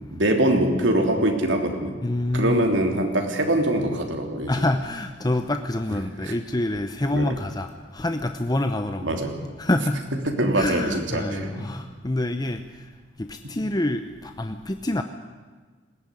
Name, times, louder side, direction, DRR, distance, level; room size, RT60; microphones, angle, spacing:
voice 1, 0.1-1.9 2.3-4.5 6.2-6.3 7.1-7.3 9.0-9.3 10.3-11.7, right 1 dB, 80° right, 3 dB, 3.2 m, -23 dB
voice 2, 2.0-2.6 4.5-9.2 9.6-10.1 10.6-12.9 13.2-15.0, left 1 dB, 20° left, 7 dB, 0.8 m, -27 dB
20.5 x 17.0 x 9.8 m, 1.4 s
head